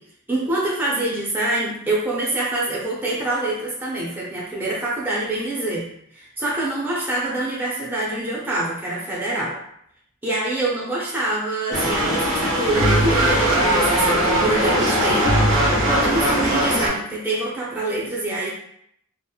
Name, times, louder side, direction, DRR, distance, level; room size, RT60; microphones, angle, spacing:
voice 1, 0.3-5.9 6.1-9.6 10.2-15.3 15.6-18.5, right 2 dB, 10° right, -6 dB, 0.5 m, -25 dB
sound 1, 11.7-16.9, right 1 dB, 80° right, 1.0 m, -19 dB
2.8 x 2.0 x 2.3 m, 0.69 s
head